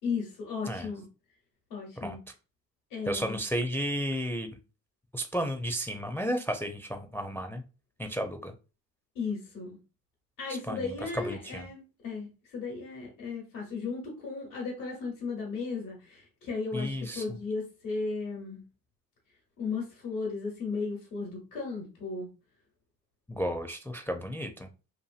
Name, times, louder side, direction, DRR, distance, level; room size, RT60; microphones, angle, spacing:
voice 1, 0.0-1.0 1.7-2.2 2.9-3.4 9.1-9.8 10.4-18.6 19.6-22.3, left 4 dB, 90° left, -2 dB, 1.1 m, -35 dB
voice 2, 3.1-4.5 5.1-7.6 8.0-8.5 10.7-11.7 16.7-17.4 23.3-24.7, equal, 5° left, 5 dB, 0.4 m, -33 dB
2.8 x 2.5 x 2.4 m, 0.32 s
hypercardioid pair, 50°, 42 cm